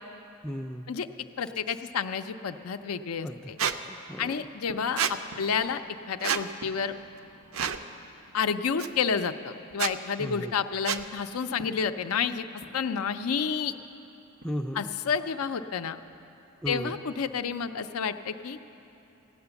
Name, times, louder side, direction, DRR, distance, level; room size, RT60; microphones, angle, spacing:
voice 1, 0.4-0.9 3.2-4.5 10.2-10.5 14.4-14.9 16.6-17.0, equal, 5° left, 4 dB, 0.3 m, -36 dB
voice 2, 1.4-3.6 4.2-5.0 5.4-5.8 6.1-6.9 8.3-12.5 12.7-13.7 14.7-16.0 16.7-18.6, left 6 dB, 85° left, 9 dB, 0.5 m, -30 dB
sound 1, 2.5-9.0 9.4-16.9, right 1 dB, 90° right, 1.6 m, -54 dB
Squeak, 3.6-3.8 5.0-5.1 6.2-6.4 7.5-7.8 8.8-8.9 9.7-9.9 10.9-11.0, right 8 dB, 70° right, 0.5 m, -28 dB
15.0 x 9.6 x 7.0 m, 2.9 s
head